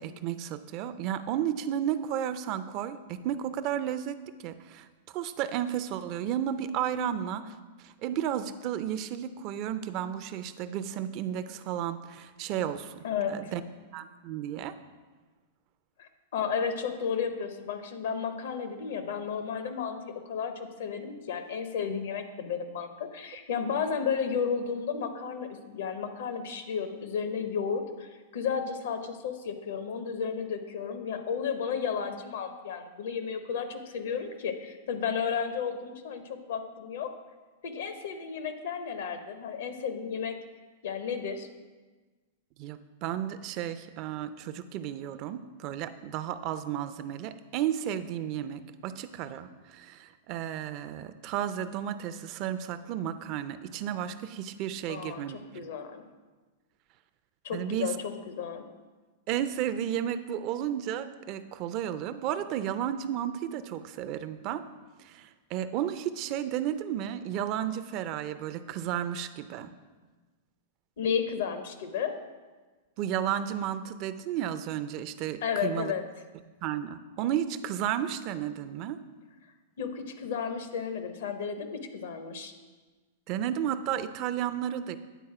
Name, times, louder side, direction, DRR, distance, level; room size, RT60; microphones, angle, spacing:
voice 1, 0.0-13.6 13.9-14.8 42.6-55.4 57.5-58.0 59.3-64.6 65.0-69.7 73.0-75.9 76.6-79.0 83.3-85.0, right 10 dB, 45° right, 12 dB, 0.4 m, -33 dB
voice 2, 13.0-13.5 16.0-37.1 37.6-40.4 40.8-41.5 54.9-55.2 55.5-56.0 57.4-57.9 58.3-58.6 71.0-72.2 75.4-76.0 79.8-82.5, left 6 dB, 75° left, 8 dB, 0.8 m, -33 dB
9.1 x 4.0 x 4.8 m, 1.3 s
hypercardioid pair, 125°, 0 cm